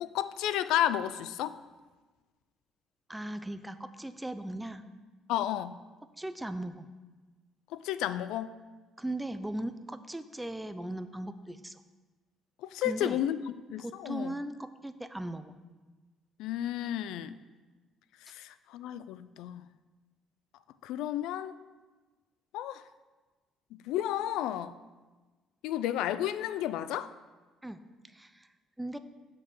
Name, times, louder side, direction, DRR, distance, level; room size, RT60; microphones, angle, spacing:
voice 1, 0.0-1.6 5.3-5.8 7.7-8.5 12.6-13.4 13.7-14.3 16.4-17.4 18.2-19.6 20.8-21.5 22.5-22.8 23.7-24.8 25.6-27.1, left 11 dB, 80° left, 14 dB, 0.4 m, -32 dB
voice 2, 3.1-4.9 6.2-6.9 9.0-11.8 12.8-13.5 13.8-15.6 27.6-29.0, right 1 dB, 5° right, 10 dB, 0.4 m, -38 dB
7.2 x 5.5 x 6.1 m, 1.3 s
cardioid pair, 160°, 0 cm